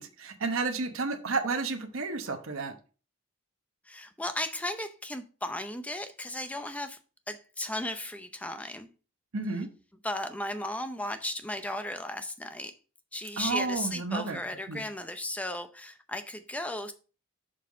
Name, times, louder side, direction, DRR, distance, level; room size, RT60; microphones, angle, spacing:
voice 1, 0.0-2.7 9.3-9.7 13.4-14.4 14.7-14.8, right 3 dB, 75° right, 1.0 m, -31 dB
voice 2, 3.9-7.0 7.3-8.9 10.0-12.7 13.1-16.9, left 1 dB, 5° left, 0.6 m, -35 dB
6.8 x 5.6 x 3.7 m
head